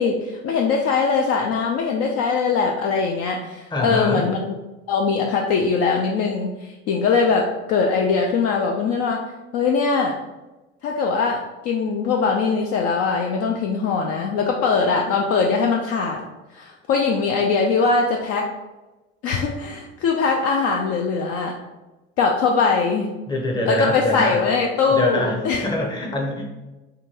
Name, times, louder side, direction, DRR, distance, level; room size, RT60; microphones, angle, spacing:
voice 1, 0.0-4.6 4.9-9.2 9.5-10.2 10.8-16.2 16.5-18.5 19.2-21.6 22.2-23.1 23.6-25.6, left 5 dB, 45° left, 1 dB, 0.4 m, -21 dB
voice 2, 3.7-4.2 23.3-24.4 24.9-25.4 25.6-26.4, left 1 dB, 10° left, 0 dB, 0.7 m, -24 dB
3.7 x 2.3 x 2.9 m, 1.1 s
figure-of-eight pair, 65°, 35 cm